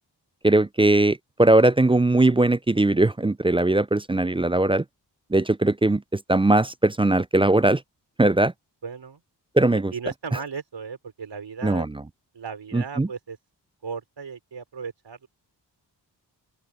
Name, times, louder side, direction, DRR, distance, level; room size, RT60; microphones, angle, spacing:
voice 1, 0.4-4.8 5.3-7.8 8.2-8.5 9.6-9.9 11.6-11.9 12.7-13.1, right 2 dB, 15° right, 0.4 m, -20 dB
voice 2, 8.8-9.2 9.7-11.9 12.3-13.4 13.8-15.3, right 5 dB, 75° right, 4.5 m, -36 dB
open air
cardioid pair, 40°, 43 cm